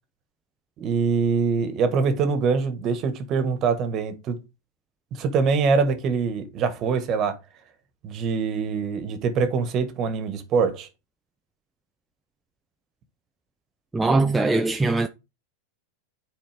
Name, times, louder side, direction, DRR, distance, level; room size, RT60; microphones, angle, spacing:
voice 1, 0.8-4.4 5.1-7.4 8.0-10.9, right 5 dB, 40° right, 1.5 m, -24 dB
voice 2, 13.9-15.1, right 3 dB, 10° right, 0.5 m, -21 dB
9.0 x 4.2 x 3.5 m
hypercardioid pair, 120°, 0 cm